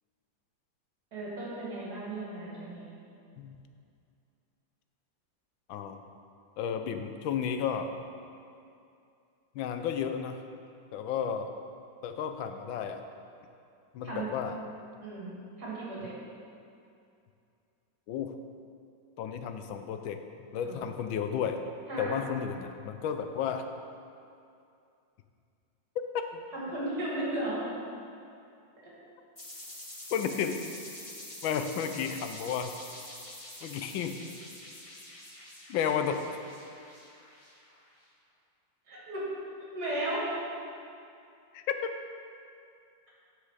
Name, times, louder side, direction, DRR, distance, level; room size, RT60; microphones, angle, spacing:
voice 1, 1.1-2.9 14.0-14.3 15.0-16.1 20.6-20.8 21.9-22.2 26.5-27.6 28.8-28.9 38.9-39.2 39.7-40.3, right 1 dB, 55° right, -7 dB, 2.8 m, -35 dB
voice 2, 5.7-6.0 6.6-7.9 9.5-10.4 10.9-11.5 12.0-13.0 13.9-14.6 18.1-18.3 19.2-20.2 20.5-21.6 22.0-23.7 26.1-26.4 30.1-30.6 31.4-33.0 33.6-34.2 35.7-36.2 41.5-41.9, left 7 dB, 85° left, 7 dB, 1.4 m, -32 dB
sound 1, 29.4-37.9, left 1 dB, 20° left, 1.0 m, -46 dB
9.6 x 6.5 x 4.8 m, 2.5 s
omnidirectional pair, 2.1 m